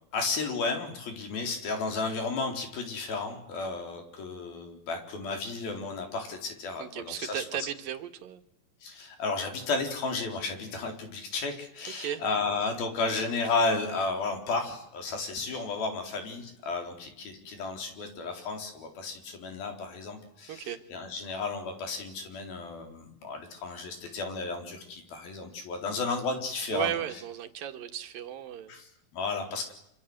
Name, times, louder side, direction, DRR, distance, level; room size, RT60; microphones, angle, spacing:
voice 1, 0.1-7.4 8.8-27.0 28.7-29.7, left 3 dB, 75° left, 4 dB, 6.0 m, -33 dB
voice 2, 6.8-8.4 12.0-12.2 20.5-20.8 26.7-28.7, right 10 dB, 70° right, 7 dB, 3.3 m, -35 dB
26.5 x 26.0 x 8.0 m, 0.78 s
omnidirectional pair, 4.2 m